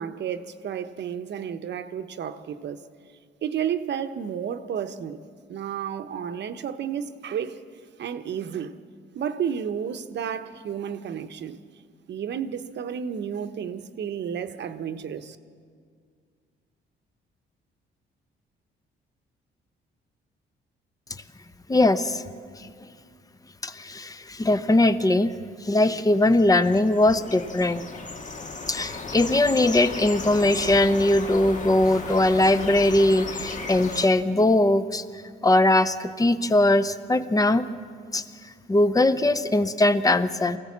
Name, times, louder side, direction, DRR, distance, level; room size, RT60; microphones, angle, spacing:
voice 1, 0.0-2.9 3.4-5.2 5.5-7.6 8.0-8.7 9.1-11.6 12.1-15.4, right 8 dB, 60° right, 1.0 m, -31 dB
voice 2, 21.7-22.2 22.6-22.7 23.6-25.3 25.6-27.9 28.7-35.0 35.4-37.7 38.1-38.2 38.7-40.6, left 2 dB, 15° left, 0.9 m, -21 dB
sound 1, 26.2-34.1, left 3 dB, 40° left, 1.6 m, -35 dB
23.5 x 16.0 x 7.4 m
cardioid pair, 90°, 20 cm